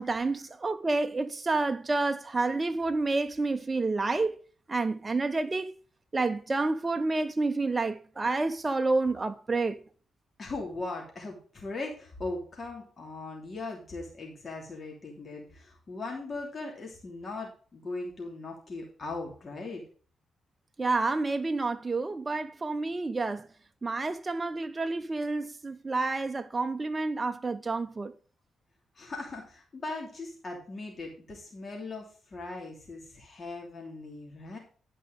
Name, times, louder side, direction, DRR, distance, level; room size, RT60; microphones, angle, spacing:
voice 1, 0.0-4.4 4.7-5.7 6.1-9.8 20.8-23.5 23.8-28.1, right 3 dB, 25° right, 0.7 m, -29 dB
voice 2, 10.4-19.8 29.0-34.6, left 3 dB, 40° left, 2.9 m, -39 dB
11.5 x 5.3 x 5.1 m
cardioid pair, 75°, 0 cm